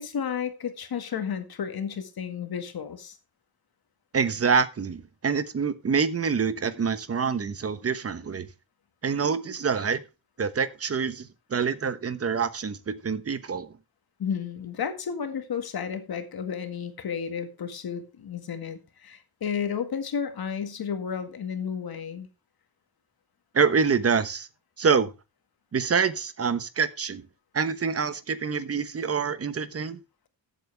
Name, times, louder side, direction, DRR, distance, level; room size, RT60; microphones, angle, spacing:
voice 1, 0.0-3.2 14.2-22.3, left 7 dB, 70° left, 1.9 m, -32 dB
voice 2, 4.1-8.5 9.0-10.0 10.4-13.7 23.5-24.5 24.8-25.1 25.7-27.2 27.5-30.0, right 5 dB, 40° right, 1.0 m, -26 dB
14.5 x 8.2 x 3.4 m
wide cardioid pair, 170°, 38 cm